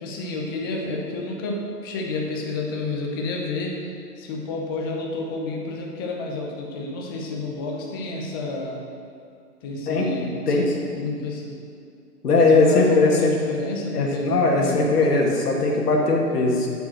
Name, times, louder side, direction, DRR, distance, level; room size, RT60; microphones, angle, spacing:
voice 1, 0.0-3.7 4.2-8.8 9.6-10.7 11.0-11.6 12.5-14.9, left 2 dB, 15° left, 0 dB, 0.7 m, -30 dB
voice 2, 12.2-13.3 13.9-16.7, left 3 dB, 70° left, -2 dB, 2.5 m, -19 dB
8.1 x 7.6 x 6.4 m, 2.3 s
hypercardioid pair, 145°, 49 cm